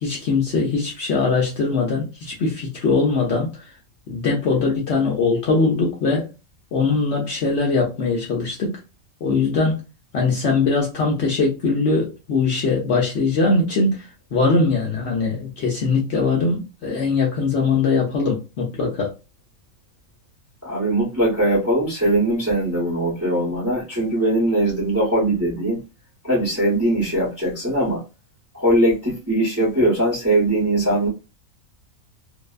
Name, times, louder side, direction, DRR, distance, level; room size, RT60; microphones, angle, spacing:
voice 1, 0.0-3.7 4.1-6.3 6.7-8.8 9.2-9.8 10.1-19.1, left 4 dB, 65° left, 0.7 m, -21 dB
voice 2, 20.6-25.8 26.2-28.0 28.5-31.1, right 1 dB, 15° right, 0.7 m, -20 dB
2.6 x 2.1 x 2.3 m
omnidirectional pair, 1.5 m